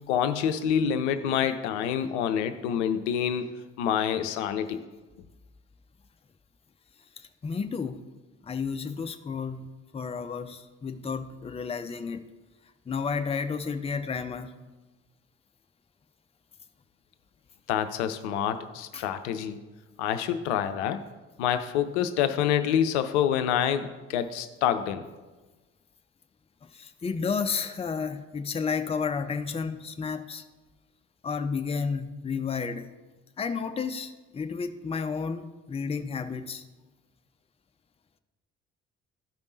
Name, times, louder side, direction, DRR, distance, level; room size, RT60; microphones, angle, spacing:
voice 1, 0.0-4.8 17.7-19.6 20.0-21.0 21.4-25.0, left 9 dB, 65° left, 10 dB, 0.6 m, -27 dB
voice 2, 7.2-8.0 8.4-9.7 9.9-12.2 12.9-14.5 18.9-19.1 26.7-30.4 31.2-32.9 33.4-36.6, left 5 dB, 15° left, 9 dB, 0.5 m, -32 dB
12.5 x 5.2 x 4.0 m, 1.2 s
figure-of-eight pair, 45°, 37 cm